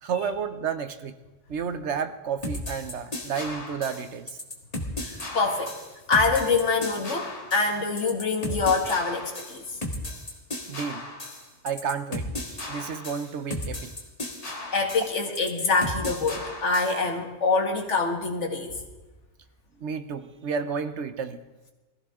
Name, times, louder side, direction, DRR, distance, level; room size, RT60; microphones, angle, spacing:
voice 1, 0.0-1.2 1.5-4.4 10.7-11.0 11.6-13.9 19.8-21.4, right 6 dB, 70° right, 11 dB, 1.1 m, -31 dB
sound 1, 2.4-17.0, left 1 dB, 30° left, 1.8 m, -35 dB
voice 2, 5.0-5.7 6.1-9.8 14.7-18.8, left 4 dB, 75° left, 2 dB, 2.0 m, -25 dB
21.5 x 15.0 x 3.7 m, 1.1 s
omnidirectional pair, 1.2 m